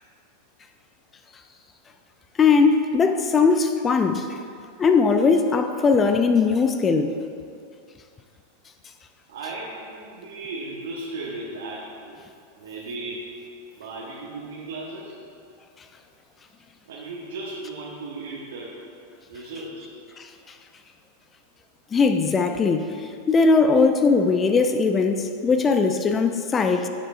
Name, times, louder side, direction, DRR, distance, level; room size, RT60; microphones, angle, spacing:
voice 1, 2.4-4.3 4.8-7.1 21.9-26.9, left 4 dB, 20° left, 8 dB, 0.5 m, -19 dB
voice 2, 9.3-12.2 12.5-13.5 13.7-15.2 16.9-18.8 19.3-20.0, right 2 dB, 60° right, -5 dB, 1.3 m, -36 dB
14.0 x 7.4 x 2.6 m, 2.4 s
figure-of-eight pair, 90°, 0 cm